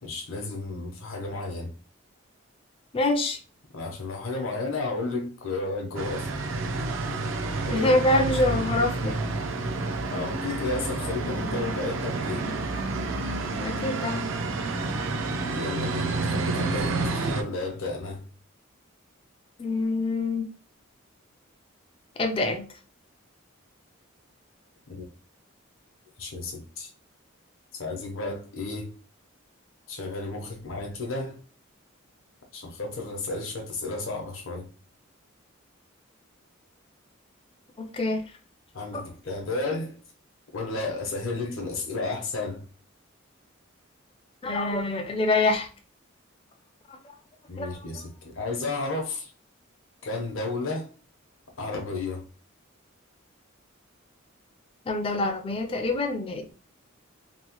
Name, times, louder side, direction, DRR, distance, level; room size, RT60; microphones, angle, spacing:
voice 1, 0.0-1.7 3.7-6.4 7.6-8.0 8.5-8.6 10.1-12.5 15.4-18.3 24.9-25.1 26.2-26.9 27.8-28.9 29.9-31.4 32.5-34.7 38.7-40.0 40.5-42.7 47.5-49.3 50.0-50.9 51.6-52.2, left 3 dB, 80° left, 0.8 m, -32 dB
voice 2, 2.9-3.4 7.7-9.2 13.6-14.3 19.6-20.5 22.2-22.7 37.8-38.3 38.9-39.0 44.4-45.7 47.6-47.7 54.9-56.5, left 2 dB, 25° left, 0.4 m, -25 dB
sound 1, 6.0-17.4, right 3 dB, 65° right, 0.4 m, -29 dB
3.0 x 2.1 x 2.9 m
head